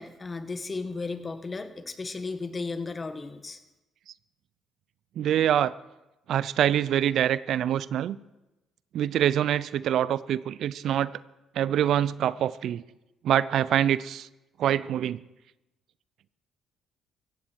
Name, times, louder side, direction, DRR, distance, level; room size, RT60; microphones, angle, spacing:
voice 1, 0.0-3.6, left 3 dB, 30° left, 8 dB, 1.7 m, -35 dB
voice 2, 5.2-5.7 6.3-8.2 8.9-11.1 11.6-12.8 13.2-14.3 14.6-15.2, right 10 dB, 65° right, 19 dB, 0.5 m, -25 dB
16.0 x 15.5 x 4.7 m, 0.99 s
hypercardioid pair, 60°, 0 cm